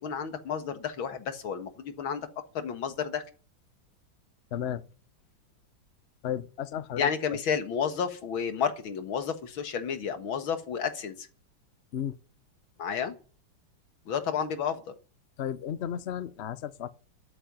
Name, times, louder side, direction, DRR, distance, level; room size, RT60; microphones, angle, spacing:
voice 1, 0.0-2.2 2.5-3.2 7.0-11.3 12.8-13.2 14.1-14.8, left 7 dB, 80° left, 2.4 m, -31 dB
voice 2, 4.5-4.8 6.2-7.1 11.9-12.2 15.4-16.9, left 9 dB, 55° left, 0.7 m, -33 dB
12.5 x 8.7 x 9.4 m
omnidirectional pair, 2.2 m